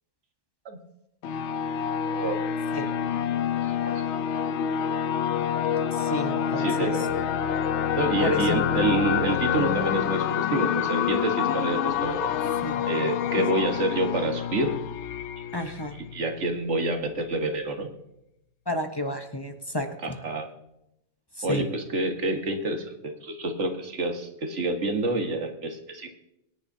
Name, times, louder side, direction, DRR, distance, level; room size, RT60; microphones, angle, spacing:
sound 1, 1.2-16.6, left 8 dB, 85° left, 0.9 m, -27 dB
voice 1, 5.9-7.0 8.2-8.8 12.6-12.8 13.4-13.5 15.5-15.9 18.7-20.2 21.4-21.7, left 1 dB, 25° left, 5 dB, 0.9 m, -31 dB
voice 2, 6.6-7.0 8.0-12.3 12.9-14.8 16.1-17.9 20.0-20.5 21.4-26.1, right 2 dB, 90° right, 5 dB, 1.7 m, -28 dB
23.0 x 10.0 x 2.7 m, 0.85 s
omnidirectional pair, 1.2 m